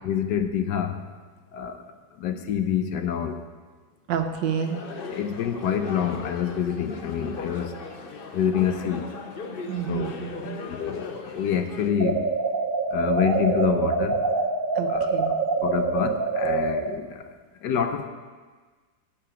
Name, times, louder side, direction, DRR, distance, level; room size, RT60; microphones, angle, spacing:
voice 1, 0.0-1.0 1.5-1.8 2.2-3.4 5.1-7.8 8.3-9.1 9.9-10.2 10.7-12.2 12.9-14.2 14.9-15.1 15.6-17.1 17.6-18.1, left 8 dB, 75° left, 8 dB, 1.4 m, -26 dB
voice 2, 4.1-4.8 9.6-10.6 14.7-15.6, right 8 dB, 85° right, 6 dB, 1.5 m, -30 dB
sound 1, 4.5-11.9, left 4 dB, 50° left, 0.7 m, -38 dB
sound 2, 12.0-16.9, right 4 dB, 45° right, 0.7 m, -25 dB
12.0 x 8.1 x 4.9 m, 1.4 s
omnidirectional pair, 1.9 m